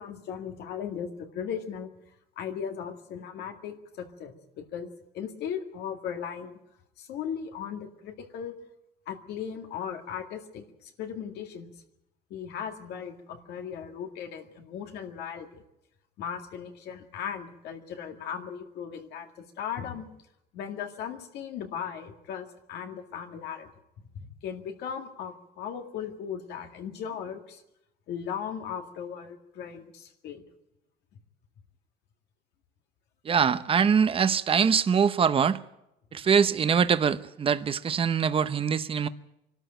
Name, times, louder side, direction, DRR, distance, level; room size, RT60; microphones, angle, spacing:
voice 1, 0.0-1.9 2.4-4.9 5.1-6.6 7.0-8.6 9.1-11.7 12.3-15.6 16.2-20.1 20.5-23.7 24.1-27.6 28.1-30.4, left 8 dB, 75° left, 2.1 m, -37 dB
voice 2, 33.2-35.6 36.1-39.1, right 7 dB, 35° right, 0.8 m, -23 dB
22.5 x 13.0 x 9.0 m
cardioid pair, 110°, 17 cm